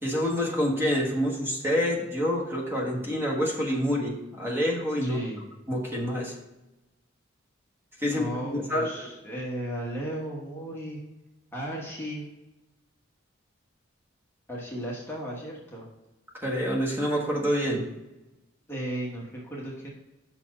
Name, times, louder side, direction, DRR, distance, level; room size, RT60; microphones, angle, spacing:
voice 1, 0.0-5.2 5.7-6.3 8.0-9.1 16.3-17.8, equal, 10° right, -2 dB, 1.4 m, -27 dB
voice 2, 5.0-5.4 8.1-11.0 11.5-12.3 14.5-15.9 18.7-19.9, equal, 10° left, -4 dB, 1.2 m, -35 dB
5.9 x 4.3 x 6.0 m, 1.0 s
head